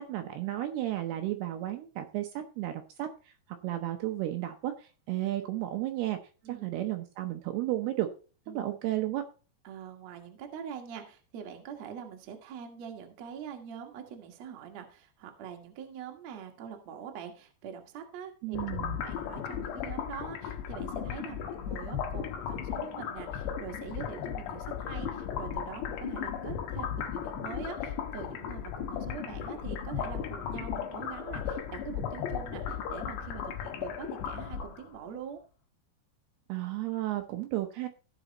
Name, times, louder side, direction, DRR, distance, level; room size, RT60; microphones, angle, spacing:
voice 1, 0.0-3.3 3.6-6.2 6.5-8.1 8.5-9.2 18.4-19.0 36.5-37.9, right 14 dB, 75° right, 5 dB, 2.7 m, -33 dB
voice 2, 9.6-35.4, right 8 dB, 55° right, 3 dB, 2.0 m, -44 dB
sound 1, 18.5-35.0, left 8 dB, 75° left, 3.4 m, -36 dB
16.0 x 5.5 x 4.1 m, 0.36 s
omnidirectional pair, 5.0 m